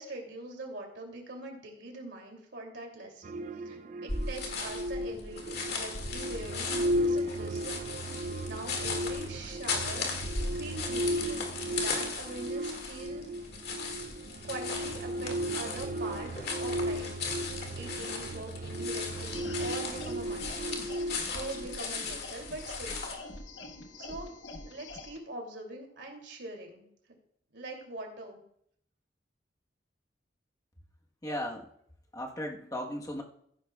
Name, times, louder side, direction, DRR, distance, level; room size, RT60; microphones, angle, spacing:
voice 1, 0.0-7.9 8.4-10.1 10.5-13.2 14.4-16.3 16.6-17.4 17.7-23.1 24.0-24.3 24.7-26.9 27.5-28.4, right 2 dB, 70° right, 2 dB, 2.6 m, -43 dB
Ambient Atmos Space Pad, 3.2-22.1, right 1 dB, 45° right, 0.5 m, -35 dB
sound 1, 4.1-23.1, left 4 dB, 60° left, 2.0 m, -37 dB
sound 2, 19.2-25.2, left 2 dB, 90° left, 1.3 m, -45 dB
voice 2, 31.2-31.7 32.1-33.2, equal, 20° left, 1 dB, 1.2 m, -36 dB
15.0 x 10.5 x 2.3 m, 0.69 s
head